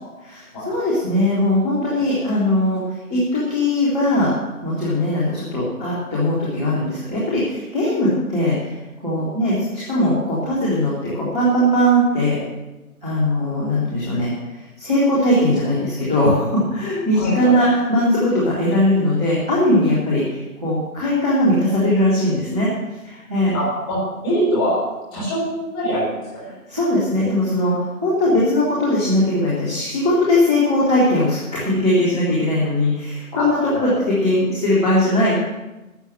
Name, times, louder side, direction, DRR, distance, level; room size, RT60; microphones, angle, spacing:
voice 1, 0.2-2.8 3.1-4.3 4.6-8.8 9.0-12.4 13.0-22.7 23.0-23.5 26.7-35.4, left 1 dB, 5° right, -13 dB, 1.0 m, -19 dB
voice 2, 17.1-17.5 23.5-24.0 24.2-24.8 25.1-26.1 26.4-26.5 33.3-34.0, equal, 15° left, -8 dB, 6.6 m, -23 dB
12.5 x 8.0 x 8.9 m, 1.1 s
figure-of-eight pair, 155°, 44 cm